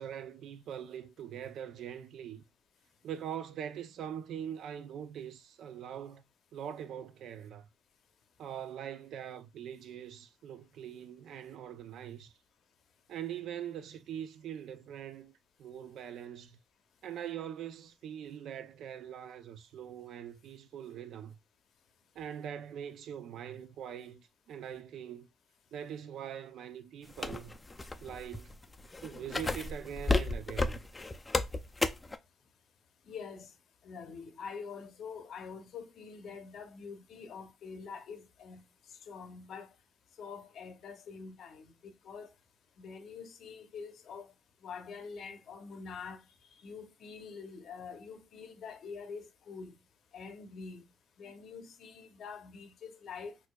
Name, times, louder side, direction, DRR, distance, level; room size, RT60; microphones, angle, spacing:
voice 1, 0.0-2.4 3.0-6.2 6.5-7.7 8.4-12.3 13.1-15.3 15.6-16.6 17.0-21.4 22.2-25.3 25.7-27.5 28.0-28.6 29.0-30.8, right 9 dB, 75° right, 0.3 m, -42 dB
sound 1, 27.1-32.2, left 2 dB, 20° left, 0.3 m, -32 dB
voice 2, 33.1-33.5 33.8-38.6 39.1-39.7 40.2-42.3 42.8-44.3 44.6-46.2 46.6-49.8 50.1-50.8 51.2-53.4, left 5 dB, 70° left, 0.6 m, -45 dB
4.3 x 2.6 x 2.2 m
cardioid pair, 90°, 0 cm